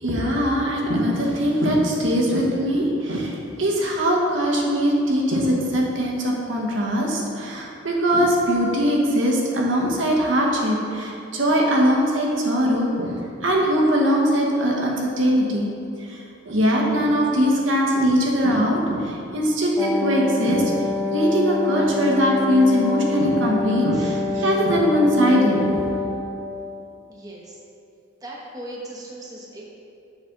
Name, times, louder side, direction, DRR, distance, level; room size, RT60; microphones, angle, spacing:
voice 1, 0.0-13.2 13.4-15.7 16.1-20.7 21.1-25.9, equal, 70° right, -2 dB, 1.1 m, -21 dB
Wind instrument woodwind instrument, 19.8-26.5, left 3 dB, ahead, 0.5 m, -26 dB
voice 2, 27.1-27.4 28.2-29.6, right 1 dB, 20° right, -3 dB, 1.0 m, -38 dB
7.3 x 5.8 x 3.8 m, 2.6 s
head